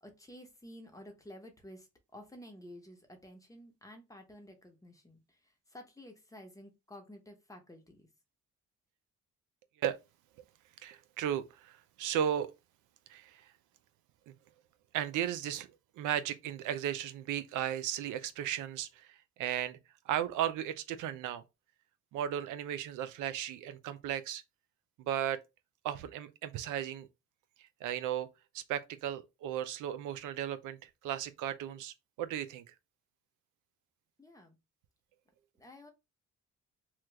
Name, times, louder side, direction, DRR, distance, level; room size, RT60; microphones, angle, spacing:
voice 1, 0.0-8.1 34.2-34.6 35.6-35.9, left 1 dB, 10° left, 0.9 m, -52 dB
voice 2, 10.8-12.5 13.1-13.4 14.3-14.4 14.9-15.7 16.0-19.8 20.1-21.4 22.1-24.4 25.0-25.4 25.8-27.1 27.8-28.3 28.5-32.7, right 10 dB, 90° right, 0.5 m, -35 dB
3.0 x 2.3 x 3.3 m
cardioid pair, 90°, 30 cm